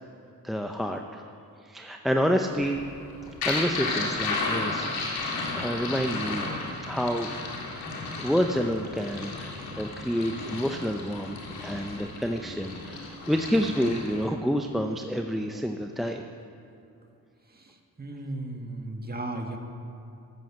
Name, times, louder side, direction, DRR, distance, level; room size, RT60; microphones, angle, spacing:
voice 1, 0.4-1.2 1.6-2.9 3.3-5.3 5.5-6.5 6.9-7.3 8.2-16.2, equal, ahead, 4 dB, 0.7 m, -28 dB
sound 1, 2.5-14.3, left 3 dB, 85° left, 2.3 m, -34 dB
voice 2, 18.0-19.6, right 2 dB, 25° right, 2 dB, 1.8 m, -35 dB
13.0 x 7.7 x 7.5 m, 2.8 s
cardioid pair, 75°, 36 cm